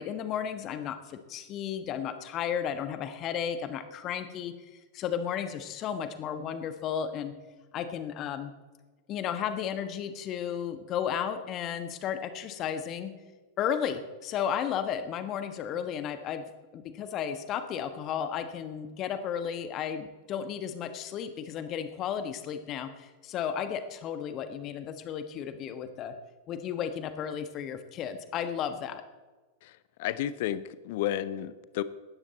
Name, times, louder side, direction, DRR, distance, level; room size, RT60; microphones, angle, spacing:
voice 1, 0.0-7.3 7.7-8.5 9.1-13.1 13.6-16.4 16.7-26.1 26.5-29.0, left 8 dB, 35° left, 10 dB, 1.4 m, -33 dB
voice 2, 30.0-31.8, left 12 dB, 50° left, 16 dB, 0.8 m, -32 dB
17.5 x 13.0 x 4.2 m, 1.3 s
figure-of-eight pair, 90°, 0 cm